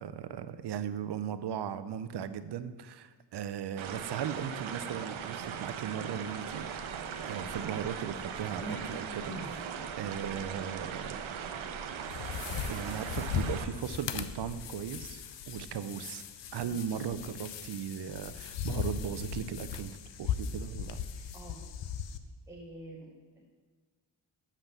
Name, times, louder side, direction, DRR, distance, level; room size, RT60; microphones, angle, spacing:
voice 1, 0.0-9.7 10.0-11.2 12.7-16.2 16.5-21.0, right 8 dB, 60° right, 13 dB, 0.6 m, -37 dB
sound 1, 3.8-13.7, right 7 dB, 90° right, 0.8 m, -39 dB
sound 2, 6.4-11.9, equal, 25° left, 1.2 m, -47 dB
sound 3, 11.9-22.2, left 8 dB, 65° left, 0.7 m, -38 dB
voice 2, 21.3-21.7 22.5-23.5, right 1 dB, 5° right, -4 dB, 1.0 m, -48 dB
7.4 x 5.9 x 6.6 m, 1.5 s
wide cardioid pair, 135°, 47 cm